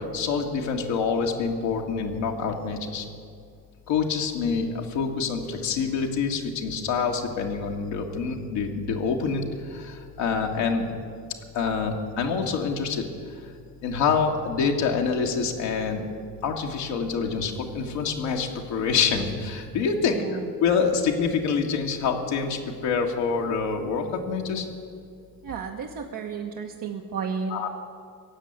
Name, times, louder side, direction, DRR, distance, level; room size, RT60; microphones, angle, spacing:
voice 1, 0.0-3.1 3.9-10.9 11.5-13.4 13.8-16.0 16.4-20.2 20.6-24.7 27.5-27.7, left 5 dB, 65° left, 1 dB, 1.9 m, -26 dB
voice 2, 20.1-20.5 25.4-27.7, right 5 dB, 45° right, 2 dB, 1.2 m, -33 dB
17.5 x 7.5 x 9.6 m, 2.2 s
hypercardioid pair, 55°, 48 cm